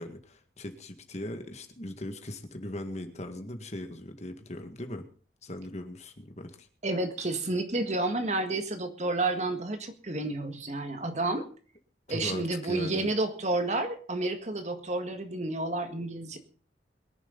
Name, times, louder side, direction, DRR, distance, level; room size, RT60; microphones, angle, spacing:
voice 1, 0.0-5.1 5.4-6.7 12.1-13.1, left 1 dB, 40° left, 6 dB, 1.9 m, -39 dB
voice 2, 6.8-11.5 12.1-16.4, right 2 dB, 40° right, 7 dB, 1.8 m, -30 dB
22.5 x 11.0 x 4.0 m, 0.40 s
head